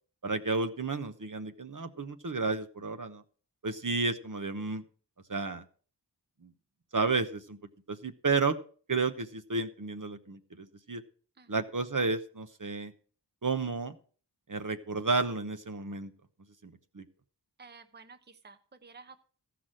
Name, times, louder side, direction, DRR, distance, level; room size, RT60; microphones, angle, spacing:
voice 1, 0.2-3.2 3.6-4.8 5.3-5.6 6.4-6.5 6.9-7.6 7.9-8.6 8.9-11.0 11.5-12.9 13.4-13.9 14.5-16.1 16.6-17.0, right 4 dB, 45° right, 8 dB, 1.0 m, -32 dB
voice 2, 17.6-19.2, right 4 dB, 25° right, 7 dB, 0.9 m, -52 dB
14.0 x 6.0 x 6.4 m, 0.41 s
wide cardioid pair, 55°, 42 cm